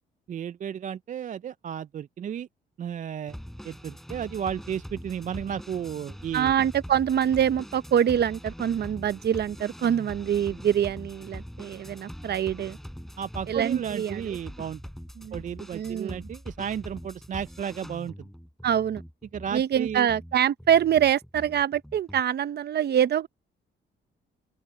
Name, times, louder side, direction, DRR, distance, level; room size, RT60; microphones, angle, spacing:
voice 1, 0.3-2.5 2.8-3.4 3.6-6.5 13.2-14.8 15.3-18.3 19.3-20.1, right 8 dB, 40° right, 0.4 m, -33 dB
sound 1, 3.3-22.2, equal, ahead, 5.6 m, -43 dB
voice 2, 6.3-12.8 13.5-14.4 15.2-15.4 15.7-16.3 18.6-19.0 19.5-23.3, right 9 dB, 55° right, 0.9 m, -25 dB
open air
cardioid pair, 90°, 20 cm